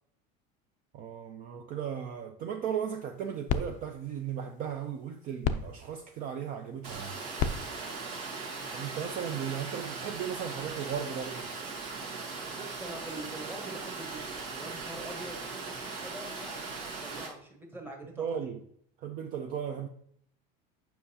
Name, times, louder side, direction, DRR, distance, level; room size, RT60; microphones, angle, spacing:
voice 1, 0.9-7.2 8.7-11.5 18.2-18.6 19.0-19.9, right 8 dB, 40° right, 0.5 m, -36 dB
sound 1, 2.9-9.3, left 6 dB, 40° left, 0.4 m, -38 dB
Water, 6.8-17.3, right 4 dB, 75° right, 1.6 m, -39 dB
voice 2, 12.5-18.5, right 1 dB, 10° right, 1.1 m, -45 dB
7.4 x 5.7 x 2.8 m
cardioid pair, 155°, 21 cm